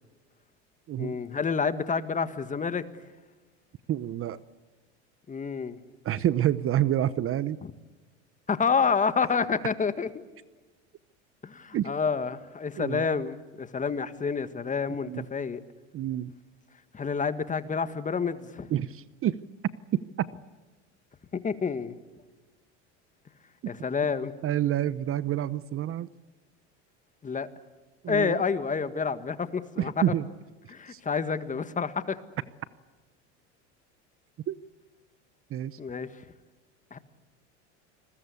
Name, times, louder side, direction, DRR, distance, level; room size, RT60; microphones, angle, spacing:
voice 1, 1.0-2.8 5.3-5.8 8.5-10.1 11.4-15.6 16.9-18.7 21.3-22.0 23.7-24.3 27.2-27.5 28.1-29.9 30.7-32.2 35.8-36.1 36.9-37.0, left 5 dB, 20° left, 12 dB, 1.7 m, -28 dB
voice 2, 3.9-4.4 6.0-7.6 11.7-11.9 12.8-13.1 15.0-15.3 15.9-16.3 18.7-19.4 19.9-20.3 24.4-26.1 28.0-28.4 29.8-30.3 30.9-31.0 34.5-34.6 35.5-35.8, right 11 dB, 40° right, 17 dB, 0.9 m, -28 dB
29.0 x 21.0 x 8.4 m, 1.2 s
supercardioid pair, 100°, 35 cm